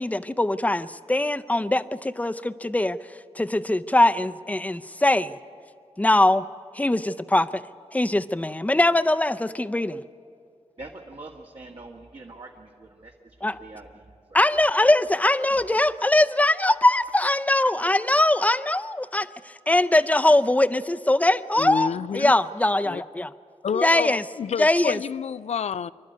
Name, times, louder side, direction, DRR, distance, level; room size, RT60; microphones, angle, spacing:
voice 1, 0.0-3.0 3.4-5.4 6.0-6.4 6.7-7.6 7.9-10.0 13.4-13.5 14.3-21.9 22.1-23.3 23.8-24.2 24.6-25.0, left 1 dB, 15° left, 0.6 m, -21 dB
voice 2, 10.8-14.6 15.5-15.6, right 2 dB, 55° right, 1.7 m, -44 dB
voice 3, 21.6-22.4 22.8-23.0 23.6-25.9, left 7 dB, 75° left, 0.4 m, -29 dB
25.5 x 12.0 x 9.4 m
cardioid pair, 65°, 12 cm